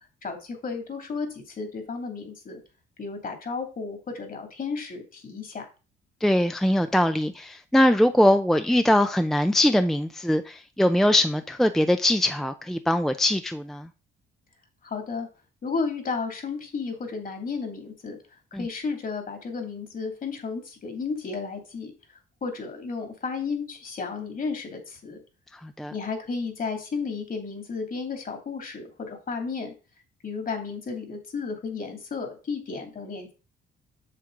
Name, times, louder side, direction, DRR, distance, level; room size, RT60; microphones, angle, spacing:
voice 1, 0.2-2.6 3.0-5.7 14.8-15.3 15.6-18.2 18.6-21.9 22.4-25.2 25.9-29.7 30.2-33.3, left 4 dB, 45° left, 2.6 m, -33 dB
voice 2, 6.2-13.9 18.5-18.6 25.6-25.9, left 1 dB, ahead, 0.5 m, -22 dB
7.6 x 6.9 x 3.8 m
cardioid pair, 90°, 20 cm